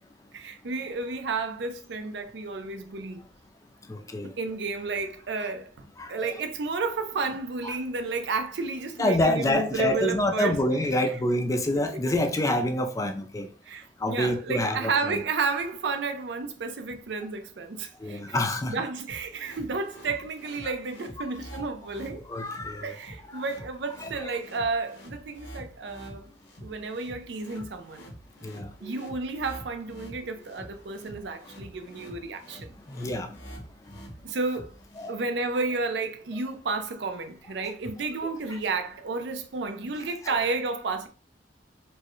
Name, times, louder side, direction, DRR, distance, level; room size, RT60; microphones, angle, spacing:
voice 1, 0.3-3.2 4.2-5.7 6.1-10.6 13.7-18.4 18.7-22.3 22.8-26.3 26.6-28.1 28.8-32.7 34.2-34.7 35.1-41.1, right 4 dB, 65° right, 0.5 m, -31 dB
voice 2, 3.9-4.3 6.0-6.3 7.6-7.7 9.0-13.5 14.0-15.2 18.0-18.8 20.6-20.7 21.5-21.7 22.2-23.0 23.3-23.4 24.0-24.3 28.4-28.9 32.9-33.6 35.0-35.2 37.6-37.7 38.5-38.6 40.2-40.3, left 1 dB, 20° left, 0.4 m, -27 dB
sound 1, 19.1-35.1, equal, 75° left, 1.4 m, -46 dB
4.4 x 2.1 x 3.0 m
head